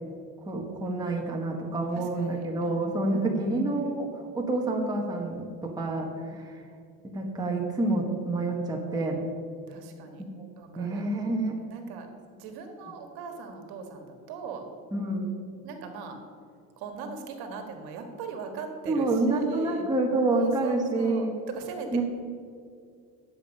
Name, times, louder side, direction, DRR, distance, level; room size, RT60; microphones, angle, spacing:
voice 1, 0.4-6.6 7.0-9.2 10.4-10.5 10.8-11.6 14.9-15.3 18.9-21.3 21.9-22.0, right 2 dB, 10° right, -1 dB, 1.2 m, -28 dB
voice 2, 1.9-3.2 6.1-6.6 9.7-10.2 10.6-11.0 11.6-12.1 12.4-14.6 15.6-16.2 16.8-20.0 20.3-22.0, right 5 dB, 60° right, 4 dB, 1.7 m, -40 dB
10.5 x 7.4 x 5.3 m, 2.3 s
supercardioid pair, 130°, 43 cm